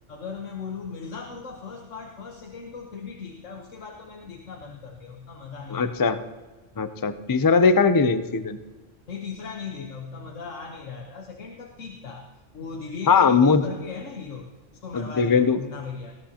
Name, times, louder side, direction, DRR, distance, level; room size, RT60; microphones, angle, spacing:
voice 1, 0.1-6.1 9.1-12.3 12.5-16.2, left 5 dB, 80° left, 1 dB, 1.5 m, -38 dB
voice 2, 5.7-6.2 6.8-8.6 13.1-13.7 14.9-15.6, left 5 dB, 30° left, 10 dB, 0.4 m, -20 dB
19.0 x 17.0 x 2.9 m, 1.3 s
omnidirectional pair, 1.3 m